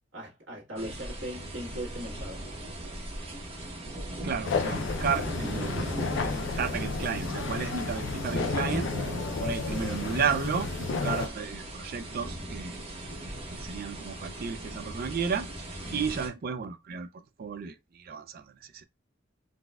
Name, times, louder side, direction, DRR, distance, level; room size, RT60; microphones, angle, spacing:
voice 1, 0.1-2.5, equal, 85° right, 1.5 m, -39 dB
sound 1, 0.8-16.3, right 1 dB, 30° right, 0.9 m, -38 dB
voice 2, 4.2-5.9 6.2-8.9 9.4-12.8 13.2-15.5 15.9-18.8, right 6 dB, 50° right, 0.4 m, -33 dB
sound 2, 4.4-11.3, left 4 dB, 70° left, 0.4 m, -32 dB
4.0 x 2.2 x 2.2 m
head